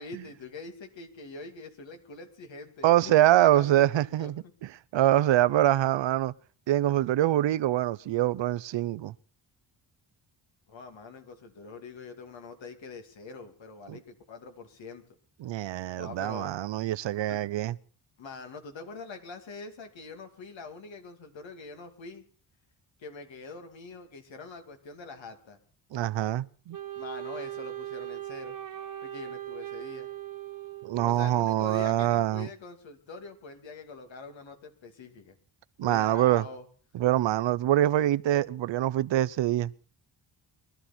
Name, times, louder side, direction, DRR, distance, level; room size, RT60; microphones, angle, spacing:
voice 1, 0.0-4.3 10.7-15.0 16.0-16.5 17.3-17.4 18.2-22.2 23.0-25.6 27.0-28.6 29.0-30.1 31.0-35.4 35.8-36.7, left 4 dB, 80° left, 2.7 m, -44 dB
voice 2, 2.8-4.4 4.9-6.3 6.7-9.1 13.9-14.0 15.4-17.7 25.9-26.8 30.8-32.5 35.8-36.5 36.9-39.9, right 13 dB, 75° right, 0.7 m, -24 dB
Wind instrument woodwind instrument, 26.7-31.3, right 13 dB, 45° right, 1.1 m, -39 dB
23.0 x 12.5 x 4.4 m
cardioid pair, 100°, 45 cm